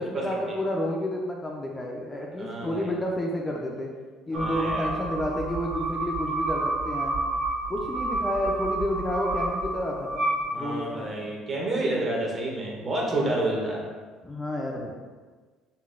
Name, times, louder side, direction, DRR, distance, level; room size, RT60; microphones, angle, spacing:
voice 1, 0.0-3.9 4.3-7.1 7.7-11.1 13.1-13.4 14.2-14.9, left 1 dB, 15° left, -2 dB, 0.3 m, -30 dB
voice 2, 2.4-2.9 4.3-4.9 10.5-13.8, right 2 dB, 30° right, -3 dB, 0.7 m, -29 dB
sound 1, 4.3-11.1, right 2 dB, 70° right, 0.8 m, -30 dB
3.8 x 2.2 x 2.4 m, 1.4 s
cardioid pair, 130°, 0 cm